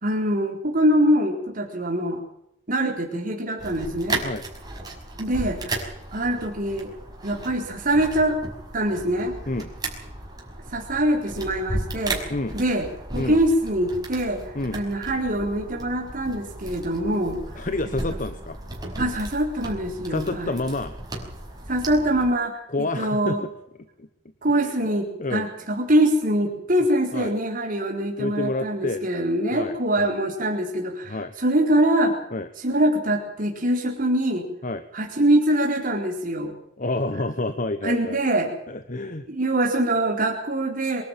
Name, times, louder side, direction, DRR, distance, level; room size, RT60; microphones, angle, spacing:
voice 1, 0.0-2.2 2.7-4.2 5.2-6.9 7.2-8.4 8.7-9.4 10.7-12.2 12.5-12.9 13.1-17.4 19.0-20.5 21.7-23.4 24.4-32.2 32.6-34.5 34.9-36.5 37.8-38.5 39.3-41.0, right 1 dB, 50° right, 0 dB, 4.1 m, -23 dB
sound 1, 3.6-22.3, right 2 dB, 20° right, 5.6 m, -35 dB
voice 2, 17.5-18.6 20.1-20.9 22.7-23.5 24.0-24.1 24.6-24.7 25.2-25.5 27.1-27.3 28.2-29.1 29.5-30.1 31.1-31.3 32.3-32.5 34.6-34.8 36.8-38.2 38.7-39.3, left 2 dB, 45° left, 11 dB, 1.2 m, -28 dB
24.5 x 12.5 x 9.0 m, 0.79 s
head